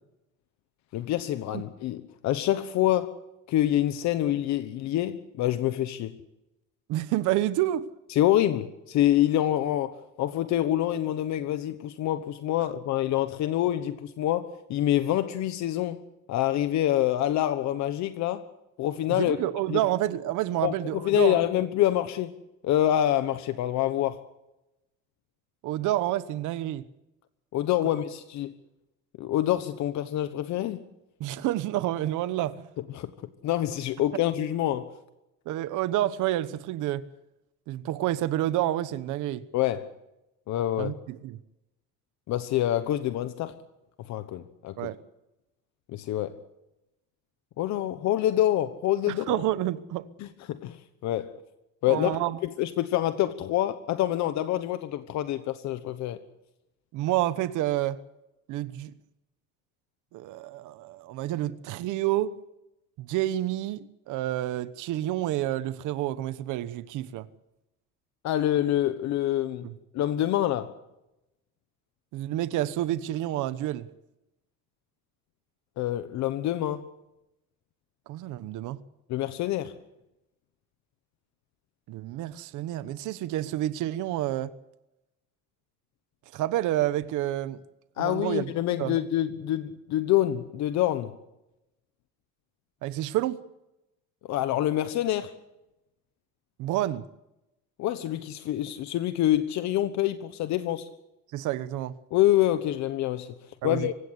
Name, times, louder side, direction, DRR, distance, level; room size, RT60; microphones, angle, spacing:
voice 1, 0.9-3.1 3.5-6.1 8.1-16.0 16.3-18.4 18.8-19.4 19.7-19.8 20.6-22.3 22.6-24.2 27.5-28.5 29.2-30.8 32.9-33.1 33.4-34.9 39.5-39.9 40.5-40.9 42.3-43.6 44.0-44.9 45.9-46.4 47.6-49.4 50.2-51.3 51.8-52.1 52.4-56.2 68.2-69.7 69.9-70.7 75.8-76.9 79.1-79.8 88.0-91.1 94.2-95.3 97.8-100.9 102.1-103.3 103.6-103.9, left 13 dB, 60° left, 1.2 m, -26 dB
voice 2, 6.9-7.9 19.1-21.4 25.6-26.8 31.2-32.7 35.5-37.0 37.7-39.4 40.8-41.4 44.8-45.0 49.1-50.1 51.9-52.4 56.9-58.0 58.5-58.9 60.1-62.4 63.0-67.3 69.6-69.7 72.1-73.9 78.1-78.8 81.9-84.5 86.3-87.6 88.0-88.5 88.8-89.0 92.8-93.4 96.6-97.0 101.3-101.9 103.6-103.9, right 14 dB, 70° right, 1.2 m, -29 dB
25.0 x 16.5 x 8.2 m
cardioid pair, 170°, 31 cm